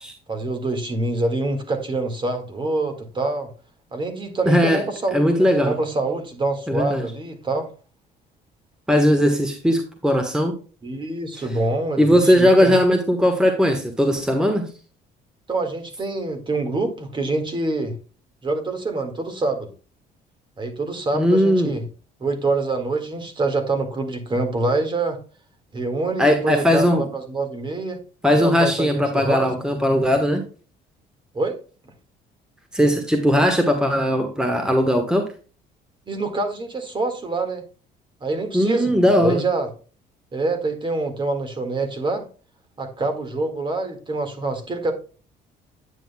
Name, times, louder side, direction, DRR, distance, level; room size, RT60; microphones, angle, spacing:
voice 1, 0.3-3.5 3.9-7.7 10.8-12.8 15.5-17.9 18.4-19.7 20.6-21.8 22.2-25.2 25.7-28.0 28.3-29.5 31.3-31.6 36.1-37.6 38.2-38.9 39.2-39.7 40.3-42.2 42.8-44.9, right 2 dB, 30° right, 1.8 m, -25 dB
voice 2, 4.5-4.8 5.1-5.8 6.7-7.1 8.9-10.5 12.0-14.7 21.1-21.7 26.2-27.0 28.2-30.4 32.7-35.2 38.5-39.4, equal, 5° right, 1.3 m, -18 dB
9.1 x 7.8 x 2.2 m
cardioid pair, 110°, 17 cm